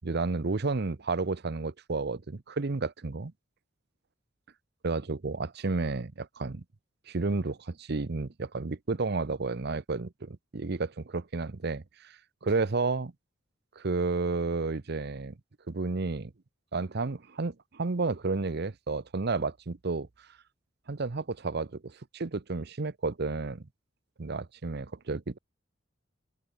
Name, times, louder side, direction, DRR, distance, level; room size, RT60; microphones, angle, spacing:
voice 1, 0.0-3.3 4.8-6.6 7.1-12.2 12.4-13.1 13.8-15.3 15.7-16.3 16.7-20.1 20.9-23.6 24.2-25.4, right 3 dB, 55° right, 0.8 m, -31 dB
open air
head